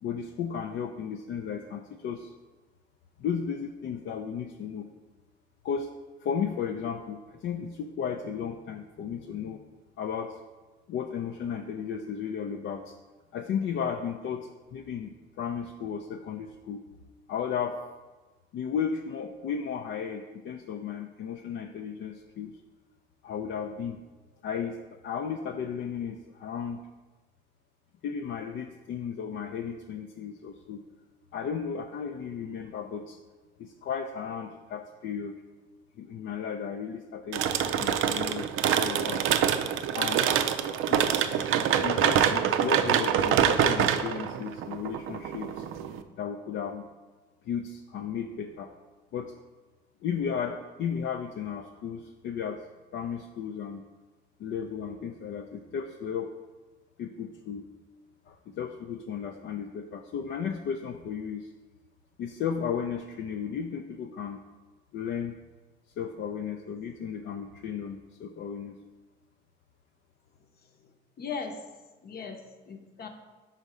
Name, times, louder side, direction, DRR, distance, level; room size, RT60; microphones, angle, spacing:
voice 1, 0.0-2.3 3.2-4.9 5.6-5.9 6.2-9.6 10.0-10.4 10.9-12.9 13.3-15.1 15.4-16.9 17.3-17.8 18.5-22.6 23.2-24.0 24.4-26.8 28.0-30.8 31.3-33.2 33.6-35.4 36.0-37.5 37.8-39.3 39.9-40.2 40.9-45.7 46.2-46.8 47.4-48.7 49.1-49.3 50.0-52.6 52.9-53.8 54.4-56.3 57.0-57.7 58.3-61.5 62.2-64.4 64.9-65.4 66.0-68.8, left 7 dB, 70° left, 4 dB, 0.4 m, -34 dB
Sounds For Earthquakes - Stuff on Table, 37.3-46.0, right 9 dB, 85° right, 0.4 m, -25 dB
voice 2, 71.2-71.6 72.0-73.1, left 5 dB, 50° left, 4 dB, 0.8 m, -38 dB
5.5 x 4.1 x 4.8 m, 1.2 s
cardioid pair, 90°, 20 cm